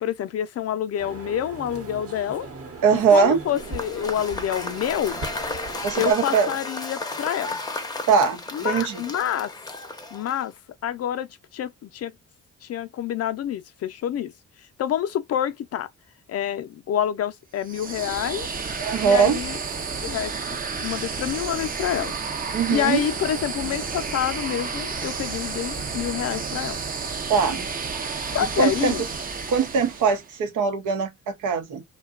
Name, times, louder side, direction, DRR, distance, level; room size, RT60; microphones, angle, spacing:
voice 1, 0.0-2.5 3.1-5.2 6.0-7.6 8.5-9.5 10.1-10.5 10.8-11.3 11.5-12.1 12.6-14.3 14.8-15.9 16.3-18.5 19.0-19.6 20.0-22.1 22.7-26.8 28.3-29.0, left 10 dB, 55° left, 0.5 m, -27 dB
sound 1, 1.0-6.1, right 3 dB, 50° right, 1.0 m, -38 dB
voice 2, 2.8-3.4 5.8-6.5 8.1-9.0 18.8-19.4 22.5-23.0 27.3-27.7 28.6-28.9 29.5-31.8, right 6 dB, 80° right, 0.8 m, -21 dB
Cheering / Applause / Crowd, 3.5-10.6, left 2 dB, 15° left, 0.6 m, -34 dB
sound 2, 17.6-30.3, right 5 dB, 30° right, 0.6 m, -31 dB
2.7 x 2.2 x 2.3 m
cardioid pair, 90°, 30 cm